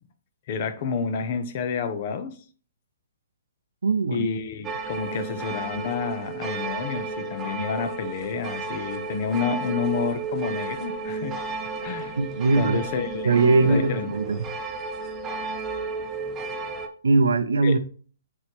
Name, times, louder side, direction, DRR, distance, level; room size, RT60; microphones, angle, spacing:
voice 1, 0.5-2.4 4.1-11.3 11.8-12.2 12.5-13.3 13.6-14.1 17.6-17.7, left 5 dB, 45° left, 1.0 m, -29 dB
voice 2, 3.8-4.3 12.2-12.8 13.2-14.5 17.0-17.8, right 3 dB, 85° right, 0.6 m, -21 dB
sound 1, 4.6-16.9, right 3 dB, 20° right, 0.9 m, -33 dB
8.7 x 3.9 x 3.2 m
hypercardioid pair, 145°, 0 cm